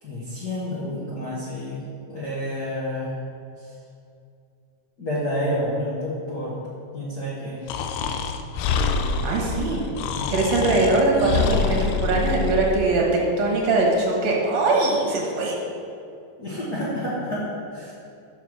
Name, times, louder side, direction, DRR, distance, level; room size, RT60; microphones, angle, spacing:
voice 1, 0.0-3.1 3.6-3.7 5.0-6.6 6.9-7.6 16.4-17.4 17.7-17.9, equal, 55° left, -8 dB, 1.1 m, -29 dB
Breathing, 7.7-12.8, left 5 dB, 90° left, 1.6 m, -26 dB
voice 2, 9.2-9.9 10.3-15.5, right 2 dB, 60° right, -2 dB, 2.4 m, -21 dB
7.1 x 5.6 x 6.1 m, 2.5 s
omnidirectional pair, 3.9 m